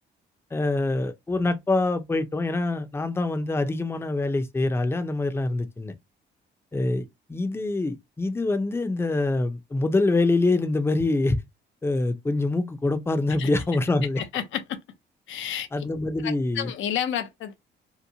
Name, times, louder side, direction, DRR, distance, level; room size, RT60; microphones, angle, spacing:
voice 1, 0.5-5.9 6.7-11.4 11.8-14.2 15.7-16.7, left 2 dB, 10° left, 0.5 m, -25 dB
voice 2, 14.3-14.8 15.3-15.7 16.2-17.6, left 10 dB, 80° left, 0.6 m, -30 dB
2.8 x 2.1 x 2.6 m
cardioid pair, 90°, 20 cm